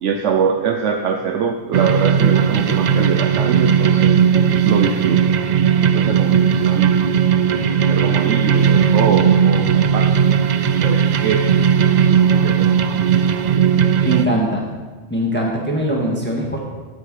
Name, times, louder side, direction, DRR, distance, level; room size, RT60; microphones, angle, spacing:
voice 1, 0.0-4.2 4.6-7.0 7.5-10.3 10.8-11.6 12.0-12.7, right 6 dB, 75° right, 5 dB, 1.0 m, -24 dB
sound 1, 1.7-14.3, right 7 dB, 55° right, 0.5 m, -16 dB
voice 2, 14.0-14.7 15.1-16.6, right 1 dB, 10° left, -3 dB, 1.8 m, -21 dB
18.0 x 6.6 x 4.9 m, 1.3 s
omnidirectional pair, 1.3 m